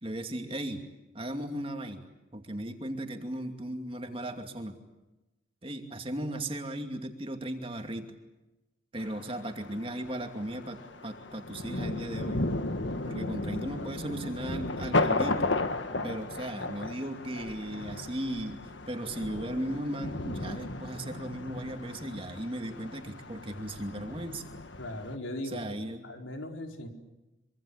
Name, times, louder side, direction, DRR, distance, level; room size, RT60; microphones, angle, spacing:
voice 1, 0.0-0.8 1.1-4.8 5.6-8.2 8.9-12.4 13.1-15.5 16.0-18.6 18.9-24.4 25.4-26.0, right 1 dB, 30° right, 5 dB, 2.5 m, -36 dB
Thunder, 9.0-25.2, left 2 dB, 70° left, 1.5 m, -35 dB
voice 2, 24.8-25.6 26.0-26.9, left 1 dB, 90° left, 3 dB, 4.5 m, -38 dB
25.5 x 25.0 x 8.2 m, 1.0 s
head